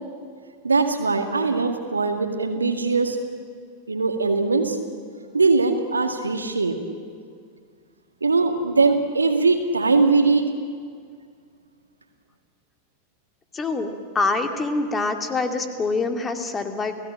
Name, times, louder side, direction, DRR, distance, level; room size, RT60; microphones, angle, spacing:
voice 1, 0.6-3.2 3.9-4.8 5.3-6.8 8.2-10.4, right 3 dB, 75° right, 5 dB, 2.1 m, -21 dB
voice 2, 13.5-16.9, left 3 dB, 20° left, 6 dB, 2.3 m, -25 dB
30.0 x 17.0 x 8.9 m, 2.1 s
figure-of-eight pair, 90°, 0 cm